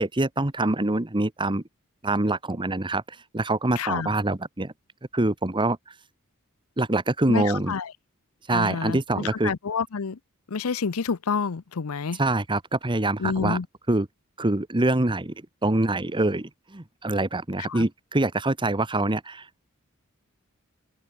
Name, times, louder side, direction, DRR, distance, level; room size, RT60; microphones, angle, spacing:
voice 1, 0.0-1.6 2.0-3.0 3.3-4.7 5.1-5.8 6.8-7.7 8.5-9.5 12.2-13.6 13.9-14.1 14.4-15.3 15.6-19.5, right 2 dB, 20° right, 1.2 m, -25 dB
voice 2, 3.8-4.1 7.3-7.9 8.5-10.2 10.5-12.2 13.2-13.7 17.7-17.9, left 5 dB, 70° left, 0.7 m, -28 dB
head